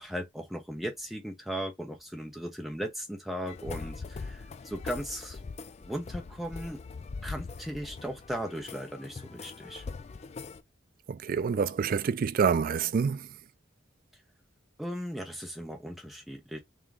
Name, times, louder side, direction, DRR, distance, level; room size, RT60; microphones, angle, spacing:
voice 1, 0.0-5.4 5.8-6.8 7.2-9.8 14.8-16.6, equal, ahead, 0.8 m, -37 dB
sound 1, 3.5-10.6, left 4 dB, 35° left, 0.3 m, -42 dB
voice 2, 11.1-13.3, right 6 dB, 45° right, 0.3 m, -27 dB
3.5 x 2.9 x 3.5 m
head